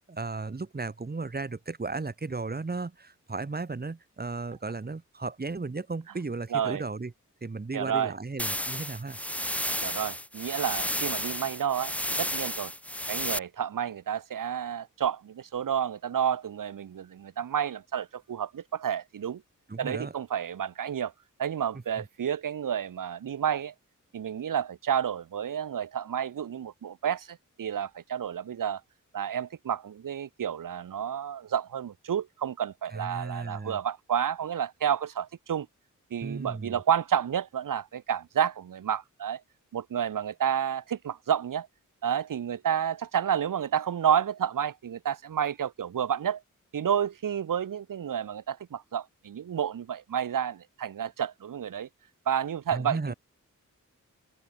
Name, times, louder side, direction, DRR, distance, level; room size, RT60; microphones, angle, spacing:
voice 1, 0.1-7.1 7.4-9.2 19.7-20.1 32.9-33.8 36.2-36.8 52.7-53.1, right 3 dB, 30° right, 1.8 m, -35 dB
voice 2, 6.5-6.8 7.7-8.1 9.8-12.7 13.1-19.4 19.8-21.1 21.4-23.7 24.1-28.8 29.1-35.7 36.1-39.4 39.7-41.7 42.0-46.4 46.7-51.9 52.3-53.1, right 8 dB, 90° right, 1.3 m, -30 dB
sound 1, 8.4-13.4, equal, 5° left, 2.5 m, -32 dB
open air
wide cardioid pair, 85°, 32 cm